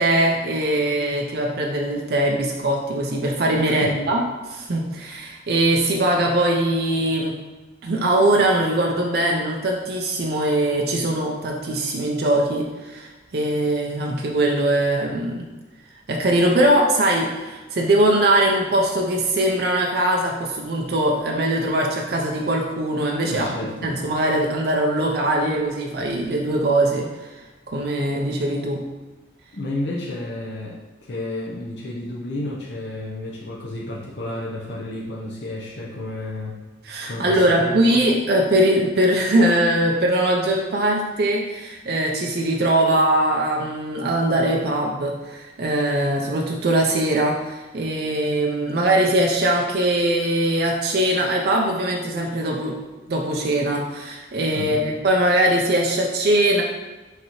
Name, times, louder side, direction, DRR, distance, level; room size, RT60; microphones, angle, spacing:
voice 1, 0.0-7.4 7.8-15.4 16.1-23.5 23.8-27.3 27.7-28.8 36.8-52.8 53.1-56.6, right 1 dB, 55° right, 0 dB, 0.5 m, -21 dB
voice 2, 3.6-4.0 23.2-23.9 29.5-30.8 31.1-36.6 37.0-38.0 54.5-54.9, left 1 dB, 65° left, -4 dB, 0.7 m, -31 dB
5.8 x 2.8 x 3.0 m, 1.2 s
head